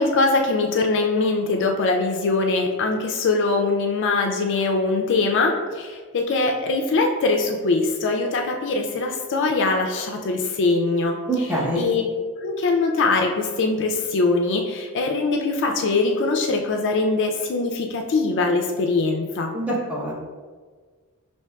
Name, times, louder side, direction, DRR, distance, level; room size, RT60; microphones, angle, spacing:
voice 1, 0.0-11.5 11.8-12.1 12.4-19.5, left 3 dB, 55° left, 3 dB, 0.4 m, -22 dB
voice 2, 11.3-11.8 19.5-20.1, right 1 dB, 5° right, -5 dB, 0.8 m, -24 dB
5.8 x 2.7 x 2.2 m, 1.5 s
head